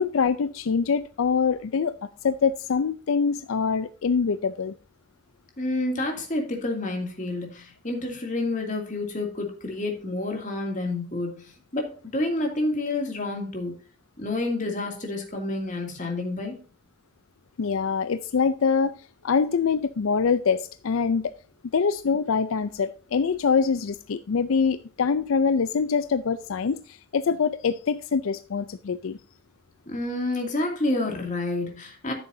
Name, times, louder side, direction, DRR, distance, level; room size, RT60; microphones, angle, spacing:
voice 1, 0.0-2.0 2.2-4.7 17.6-19.0 19.2-21.4 21.7-29.2, left 5 dB, 85° left, 0.5 m, -24 dB
voice 2, 5.6-13.8 14.2-16.6 29.9-32.1, left 2 dB, 35° left, 2.5 m, -29 dB
13.0 x 7.0 x 2.7 m
head